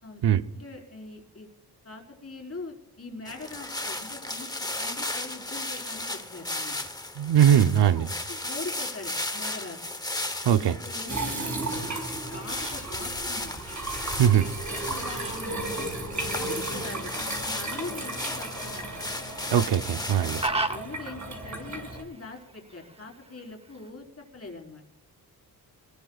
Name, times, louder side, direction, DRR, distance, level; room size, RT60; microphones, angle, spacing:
voice 1, 0.5-1.5 1.8-4.5 4.8-6.8 8.3-9.8 10.8-11.8 12.3-13.6 14.7-15.9 16.3-18.9 20.5-24.8, left 3 dB, 35° left, 4.3 m, -42 dB
sound 1, 3.3-20.5, left 2 dB, 10° left, 1.0 m, -35 dB
voice 2, 7.2-8.1 10.4-10.8 14.2-14.5 19.5-20.4, right 9 dB, 85° right, 0.8 m, -21 dB
sound 2, 11.1-22.0, right 2 dB, 45° right, 5.4 m, -35 dB
Fowl, 11.9-23.9, right 2 dB, 15° right, 0.9 m, -40 dB
27.5 x 20.5 x 2.4 m
wide cardioid pair, 95°, 40 cm